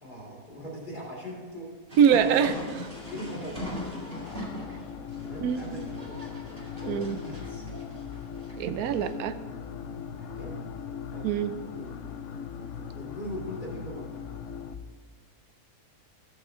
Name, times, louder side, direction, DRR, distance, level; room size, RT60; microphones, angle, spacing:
voice 1, 0.0-1.7 2.1-2.5 3.1-4.4 4.7-6.4 6.7-7.7 10.2-10.7 11.1-11.3 11.6-12.0 12.9-14.3, equal, 35° left, -4 dB, 2.8 m, -41 dB
sound 1, 1.9-9.1, left 1 dB, 40° right, 2.2 m, -41 dB
voice 2, 2.0-2.6 5.4-5.8 6.9-7.2 8.5-9.4 11.2-11.5, right 8 dB, 90° right, 10 dB, 1.1 m, -23 dB
sound 2, 2.8-14.7, left 7 dB, 65° left, 0.9 m, -39 dB
15.0 x 6.9 x 3.8 m, 1.4 s
omnidirectional pair, 1.5 m